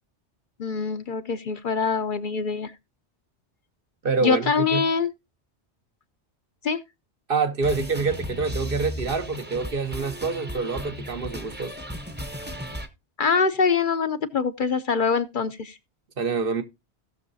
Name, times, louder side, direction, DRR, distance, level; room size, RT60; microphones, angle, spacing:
voice 1, 0.6-2.7 4.2-5.1 6.6-6.8 13.2-15.8, left 5 dB, 50° left, 0.8 m, -24 dB
voice 2, 4.0-4.8 7.3-11.7 16.2-16.6, right 4 dB, 55° right, 1.2 m, -26 dB
sound 1, 7.6-12.9, equal, 10° right, 0.8 m, -35 dB
17.0 x 6.5 x 2.6 m
omnidirectional pair, 1.1 m